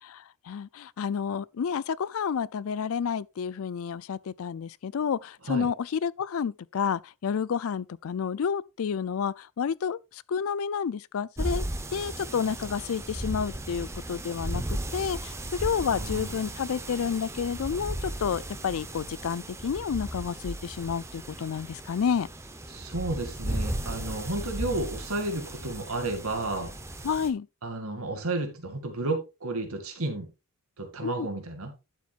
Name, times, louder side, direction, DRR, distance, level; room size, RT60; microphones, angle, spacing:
voice 1, 0.0-11.7 11.9-22.3 27.0-27.5 31.0-31.3, left 7 dB, 70° left, 0.4 m, -30 dB
sound 1, 11.4-27.3, right 1 dB, 10° right, 0.9 m, -36 dB
voice 2, 15.9-16.5 22.7-26.7 27.6-30.3 30.8-31.7, right 2 dB, 75° right, 2.2 m, -32 dB
11.5 x 7.3 x 2.4 m
head